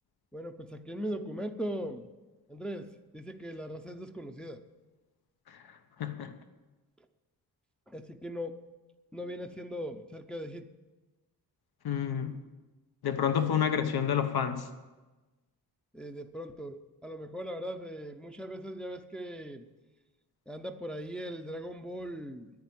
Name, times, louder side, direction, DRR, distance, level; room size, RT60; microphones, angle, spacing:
voice 1, 0.3-2.1 2.5-4.6 7.9-8.6 9.1-10.7 15.9-19.6 20.5-22.5, equal, 5° left, 5 dB, 0.5 m, -39 dB
voice 2, 6.0-6.3 11.8-12.4 13.0-14.7, left 8 dB, 70° left, 9 dB, 1.1 m, -29 dB
10.5 x 9.4 x 9.2 m, 1.2 s
wide cardioid pair, 175°, 38 cm